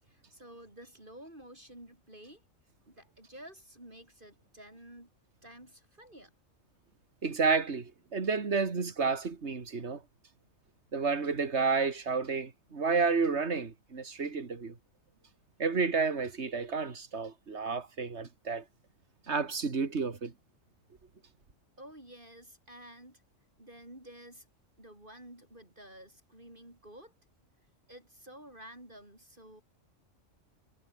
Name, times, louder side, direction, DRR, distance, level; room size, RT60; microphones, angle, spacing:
voice 1, 0.0-2.4 2.9-5.1 5.4-6.3 21.8-23.2 23.6-24.5 24.8-27.1 27.9-29.6, right 1 dB, 40° right, 8.2 m, -51 dB
voice 2, 7.2-10.0 10.9-14.7 15.6-18.6 19.3-20.3, right 4 dB, 55° right, 2.5 m, -30 dB
omnidirectional pair, 1.4 m